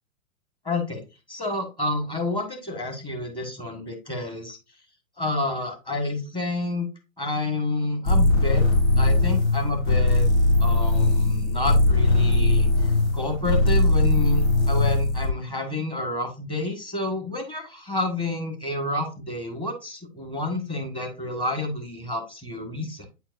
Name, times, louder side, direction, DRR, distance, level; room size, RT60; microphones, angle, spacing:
voice 1, 0.6-1.0 1.3-4.6 5.2-6.9 7.2-8.6 9.0-10.3 10.6-23.1, left 2 dB, 10° left, 3 dB, 1.5 m, -29 dB
sound 1, 8.0-15.3, left 2 dB, 75° left, 2.8 m, -20 dB
8.7 x 4.5 x 2.6 m, 0.27 s
hypercardioid pair, 130°, 41 cm